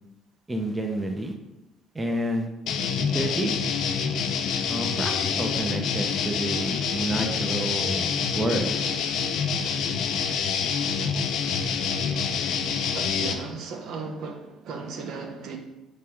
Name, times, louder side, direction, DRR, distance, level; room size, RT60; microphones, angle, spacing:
voice 1, 0.5-1.3 1.9-2.5 3.1-3.5 4.7-8.7, right 1 dB, 15° right, 3 dB, 0.4 m, -29 dB
sound 1, 2.7-13.3, left 6 dB, 70° left, 0.3 m, -27 dB
voice 2, 12.9-15.6, right 4 dB, 70° right, 3 dB, 0.5 m, -36 dB
4.8 x 2.2 x 2.9 m, 0.93 s
cardioid pair, 105°, 0 cm